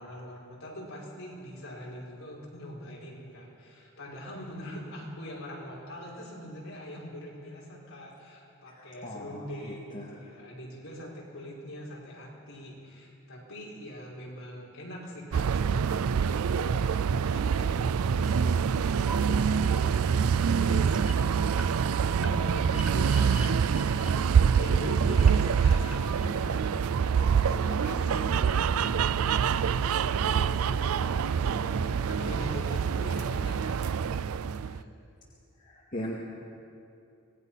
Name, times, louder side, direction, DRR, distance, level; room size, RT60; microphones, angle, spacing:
voice 1, 0.0-34.9, equal, 65° left, -4 dB, 5.5 m, -43 dB
voice 2, 8.7-10.1 19.1-19.2 29.5-29.7 35.6-36.1, equal, 40° left, -4 dB, 2.0 m, -40 dB
sound 1, 15.3-34.8, right 6 dB, 75° right, 0.4 m, -26 dB
sound 2, 18.7-26.3, right 3 dB, 5° right, 1.0 m, -43 dB
sound 3, 27.0-32.8, left 1 dB, 15° left, 1.2 m, -48 dB
25.0 x 19.0 x 5.8 m, 2.6 s
head